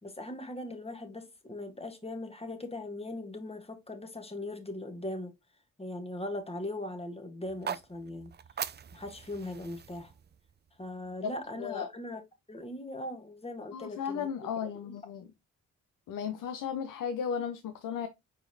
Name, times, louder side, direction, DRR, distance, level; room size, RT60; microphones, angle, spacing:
voice 1, 0.0-5.3 5.8-8.3 8.9-10.1 10.8-12.2 12.5-14.9, left 1 dB, 15° left, 1.3 m, -40 dB
sound 1, 7.4-11.6, right 8 dB, 30° right, 0.4 m, -42 dB
voice 2, 11.6-11.9 13.7-15.3 16.1-18.1, left 7 dB, 70° left, 0.7 m, -35 dB
4.6 x 4.1 x 2.7 m
supercardioid pair, 50°, 33 cm